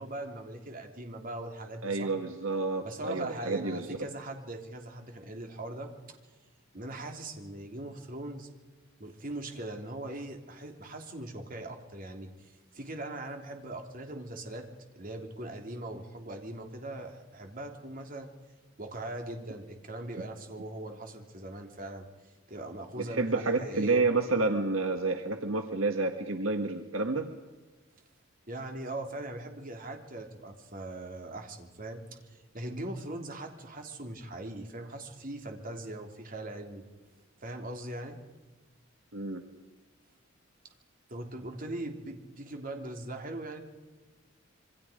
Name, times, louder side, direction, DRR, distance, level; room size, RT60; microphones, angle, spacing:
voice 1, 0.0-2.1 2.8-5.9 6.7-8.5 9.0-14.7 14.9-18.3 18.8-22.1 22.5-24.0 28.5-32.0 32.3-36.8 37.4-38.2 41.1-43.6, right 1 dB, 45° right, 3 dB, 3.4 m, -40 dB
voice 2, 1.8-3.9 23.0-27.3 39.1-39.4, right 3 dB, 75° right, 6 dB, 1.7 m, -29 dB
27.5 x 25.0 x 5.2 m, 1.2 s
head